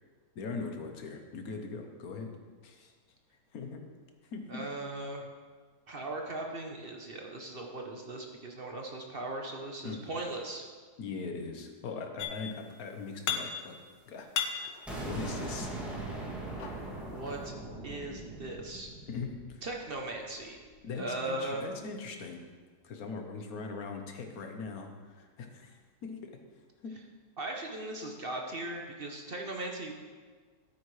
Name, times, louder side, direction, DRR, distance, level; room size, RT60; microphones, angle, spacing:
voice 1, 0.3-2.3 2.6-2.9 3.5-3.8 4.3-4.6 9.8-10.0 11.0-13.7 14.1-14.6 14.9-15.7 19.1-19.6 20.8-22.4 22.8-26.4 26.8-27.0, left 4 dB, 60° left, 4 dB, 1.4 m, -40 dB
voice 2, 4.5-5.3 5.9-10.7 17.1-17.5 17.8-18.9 19.6-20.6 20.9-21.6 27.4-29.9, right 2 dB, 40° right, 1 dB, 0.9 m, -38 dB
sound 1, 12.2-12.7 13.0-13.9 14.2-15.7 16.4-17.5, left 8 dB, 80° left, 1.4 m, -36 dB
sound 2, 14.9-20.6, right 2 dB, ahead, 2.2 m, -41 dB
11.5 x 9.3 x 3.3 m, 1.5 s
omnidirectional pair, 1.9 m